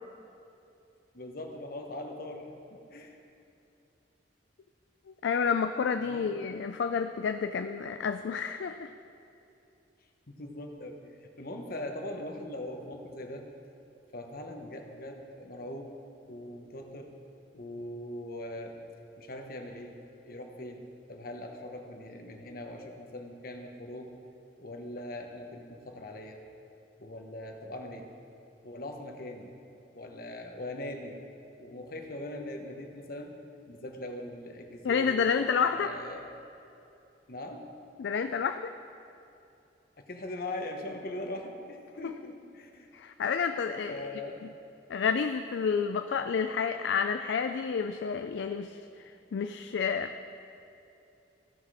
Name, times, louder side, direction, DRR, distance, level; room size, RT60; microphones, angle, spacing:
voice 1, 1.1-3.2 6.0-6.3 10.3-13.5 14.1-15.9 16.3-17.2 17.5-18.8 19.2-24.1 24.6-26.4 27.0-28.1 28.6-29.5 29.9-31.2 31.6-33.3 33.7-35.2 35.7-36.3 37.3-37.7 40.0-42.9 43.9-44.4, left 1 dB, 55° left, 3 dB, 1.0 m, -41 dB
voice 2, 5.2-8.9 34.8-35.9 38.0-38.7 42.0-42.1 42.9-44.0 44.9-48.8 49.3-50.1, left 6 dB, 80° left, 8 dB, 0.4 m, -29 dB
15.5 x 5.8 x 4.8 m, 2.8 s
head